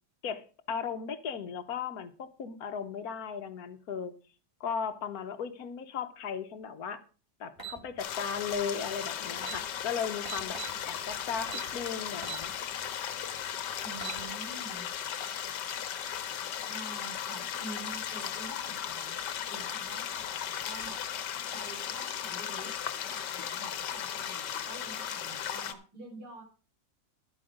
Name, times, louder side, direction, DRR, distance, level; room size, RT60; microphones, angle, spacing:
voice 1, 0.2-4.2 4.6-7.0 7.4-10.6 10.8-12.6, left 6 dB, 65° left, 1.4 m, -36 dB
sound 1, 7.6-7.8 9.0-9.1 9.3-9.6 10.2-10.8 11.5-11.7 12.2-12.4 12.9-13.0 13.8-14.2, right 6 dB, 15° right, 3.0 m, -40 dB
sound 2, 8.0-25.7, left 9 dB, 85° left, 1.5 m, -36 dB
voice 2, 13.8-14.9 16.7-19.1 19.5-21.0 21.5-22.7 23.1-26.4, right 2 dB, 70° right, 4.9 m, -47 dB
11.5 x 8.3 x 5.1 m
omnidirectional pair, 1.8 m